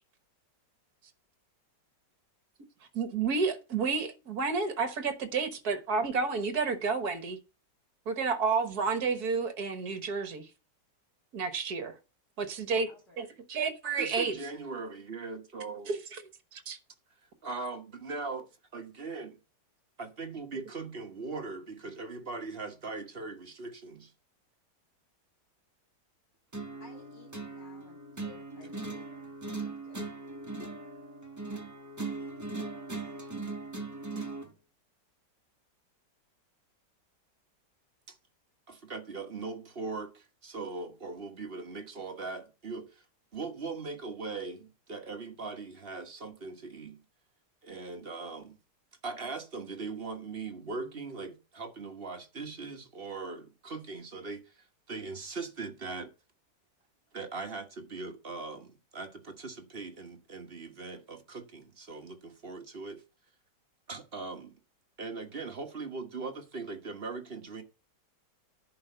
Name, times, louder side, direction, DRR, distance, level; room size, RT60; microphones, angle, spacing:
voice 1, 2.9-7.4 8.1-10.5 11.3-11.9 12.4-12.9 13.2-14.4 15.9-16.2 16.5-16.8, right 5 dB, 60° right, 1.7 m, -30 dB
voice 2, 12.9-13.2 26.8-30.2 30.6-30.7, left 4 dB, 75° left, 3.1 m, -57 dB
voice 3, 14.0-15.9 17.4-18.5 18.7-19.4 20.0-24.1 28.6-28.7 38.1-38.2 38.7-43.0 43.3-47.0 47.6-48.6 49.0-56.1 57.1-63.0 63.9-64.6 65.0-67.6, right 4 dB, 35° right, 1.3 m, -40 dB
sound 1, 26.5-34.5, right 3 dB, 10° right, 1.0 m, -39 dB
10.5 x 5.0 x 6.8 m
omnidirectional pair, 1.9 m